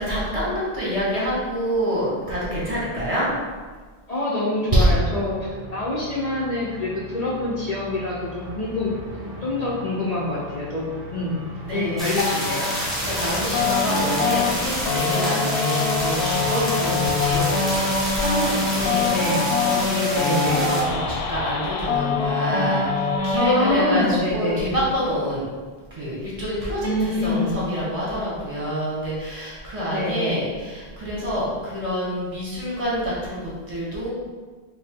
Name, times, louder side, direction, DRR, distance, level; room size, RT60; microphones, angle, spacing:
voice 1, 0.0-3.3 4.7-4.9 11.6-12.2 13.0-25.5 25.9-34.1, equal, 35° right, -7 dB, 1.1 m, -27 dB
voice 2, 4.1-8.9 9.4-11.4 11.7-12.7 19.0-19.5 20.1-20.6 23.4-24.6 26.8-27.5 29.9-30.4, left 1 dB, 45° left, -6 dB, 0.7 m, -26 dB
sound 1, 5.1-21.5, equal, 55° right, 0.8 m, -38 dB
sound 2, 12.0-20.8, equal, ahead, 1.0 m, -29 dB
sound 3, 12.2-23.8, left 4 dB, 85° left, 0.8 m, -24 dB
4.7 x 2.2 x 3.6 m, 1.4 s
omnidirectional pair, 1.0 m